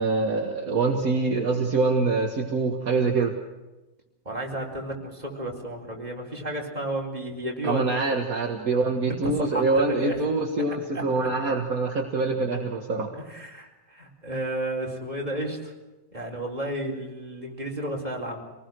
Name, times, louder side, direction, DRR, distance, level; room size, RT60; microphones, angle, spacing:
voice 1, 0.0-3.3 7.6-13.1, right 3 dB, 50° right, 2 dB, 2.2 m, -25 dB
voice 2, 4.2-7.9 9.1-10.1 13.1-15.7 16.1-18.4, right 1 dB, 20° right, -1 dB, 4.4 m, -32 dB
26.5 x 19.5 x 6.3 m, 1.1 s
omnidirectional pair, 1.9 m